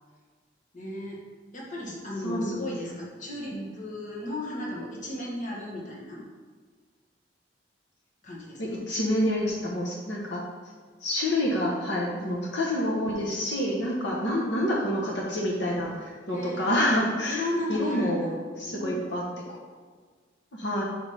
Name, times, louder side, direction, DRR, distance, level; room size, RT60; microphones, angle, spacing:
voice 1, 0.7-1.2 1.5-6.2 8.2-8.8 16.3-16.7 17.3-18.4 18.7-19.1, left 1 dB, 45° left, -3 dB, 1.5 m, -35 dB
voice 2, 2.2-2.6 3.5-3.7 8.6-10.4 11.0-17.4 17.7-18.3 18.6-19.6 20.5-20.8, left 1 dB, 80° left, -3 dB, 1.2 m, -28 dB
5.1 x 5.1 x 5.5 m, 1.5 s
head